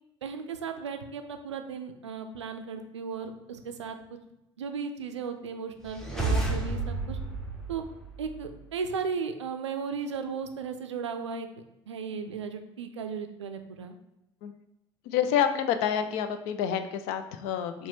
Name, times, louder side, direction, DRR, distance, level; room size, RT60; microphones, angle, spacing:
voice 1, 0.2-4.0 4.6-7.2 7.7-7.8 8.2-11.5 11.9-14.0, right 5 dB, 75° right, 6 dB, 0.4 m, -35 dB
sound 1, 5.8-8.6, right 2 dB, 5° left, 0.8 m, -31 dB
voice 2, 15.1-17.9, left 8 dB, 50° left, 9 dB, 0.4 m, -28 dB
4.7 x 2.2 x 3.3 m, 0.89 s
figure-of-eight pair, 65°, 15 cm